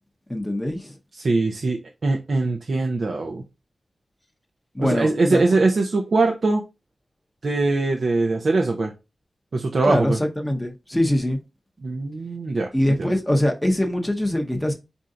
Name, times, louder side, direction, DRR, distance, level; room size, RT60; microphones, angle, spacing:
voice 1, 0.3-0.9 4.7-5.4 9.8-11.4 12.7-14.7, left 1 dB, 10° left, 0.7 m, -23 dB
voice 2, 1.1-3.4 4.8-6.6 7.4-8.9 9.5-10.2 11.8-12.7 13.0-13.1, right 3 dB, 55° right, 0.6 m, -22 dB
4.4 x 2.6 x 3.7 m
wide cardioid pair, 140°, 0 cm